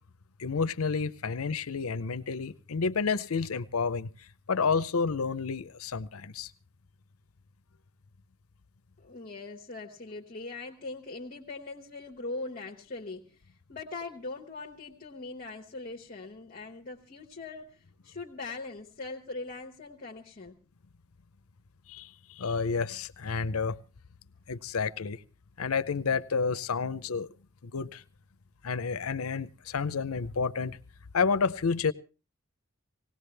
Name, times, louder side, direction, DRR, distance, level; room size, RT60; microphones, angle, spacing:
voice 1, 0.4-4.1 4.5-6.5 21.9-23.8 24.5-25.2 25.6-27.3 27.6-28.0 28.6-30.8 31.1-31.9, left 5 dB, 90° left, 0.7 m, -30 dB
voice 2, 9.0-20.6, left 3 dB, 40° left, 1.1 m, -41 dB
19.0 x 18.0 x 3.3 m
head